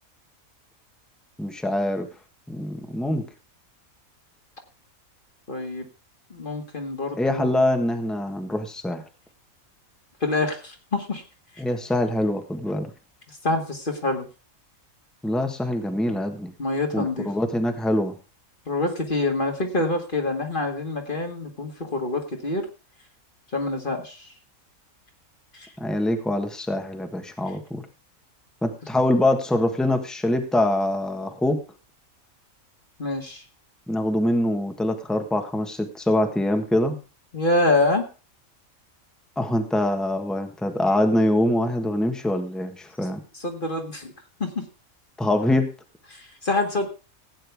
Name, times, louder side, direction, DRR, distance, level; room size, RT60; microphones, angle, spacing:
voice 1, 1.4-2.1 2.5-3.2 7.2-9.0 11.6-12.9 15.2-16.5 16.9-18.1 25.8-27.8 28.6-31.6 33.9-37.0 39.4-43.2 45.2-45.7, left 1 dB, ahead, 5 dB, 1.3 m, -24 dB
voice 2, 5.5-5.9 6.3-7.5 10.2-11.2 13.4-14.3 16.6-17.3 18.7-22.7 23.5-24.3 25.5-25.7 33.0-33.4 37.3-38.0 43.3-44.1 44.4-44.7 46.1-46.9, left 2 dB, 35° left, 2 dB, 2.1 m, -26 dB
16.0 x 9.0 x 3.5 m, 0.33 s
omnidirectional pair, 1.5 m